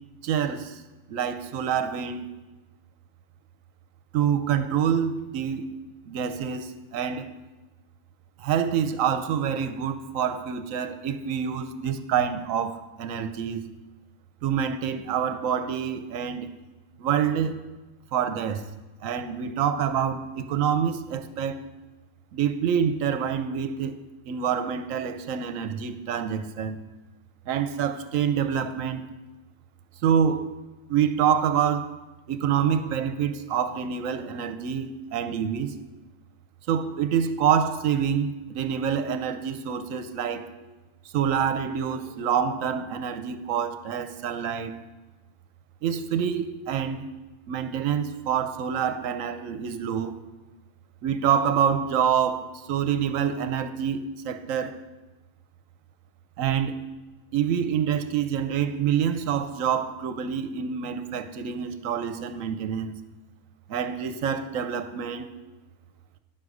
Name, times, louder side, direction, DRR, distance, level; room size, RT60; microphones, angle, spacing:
voice 1, 0.2-0.8 1.1-2.3 4.1-5.6 6.1-7.3 8.4-13.7 14.4-16.5 17.0-17.6 18.1-18.6 19.0-21.6 22.3-23.9 24.3-26.8 27.5-29.0 30.0-30.5 30.9-31.9 32.3-35.7 36.7-40.5 41.1-44.8 45.8-47.1 47.5-50.1 51.0-54.7 56.4-56.7 57.3-63.0 63.7-65.3, right 8 dB, 70° right, 10 dB, 1.0 m, -26 dB
10.5 x 6.6 x 4.8 m, 1.1 s
omnidirectional pair, 1.5 m